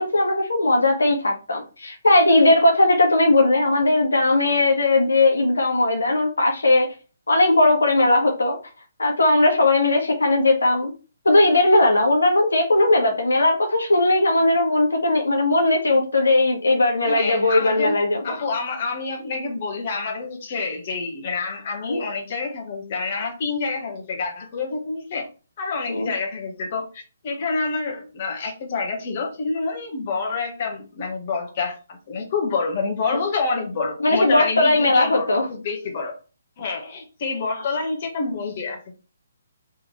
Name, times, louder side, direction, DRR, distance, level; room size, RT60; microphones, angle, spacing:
voice 1, 0.0-6.9 7.3-8.6 9.0-10.9 11.2-18.2 21.9-22.0 25.9-26.1 34.0-35.5, left 2 dB, 85° left, 1.3 m, -18 dB
voice 2, 17.0-18.0 18.2-25.3 25.6-36.1 36.6-38.9, left 4 dB, 45° left, 1.2 m, -27 dB
3.5 x 3.5 x 3.1 m
hypercardioid pair, 145°, 0 cm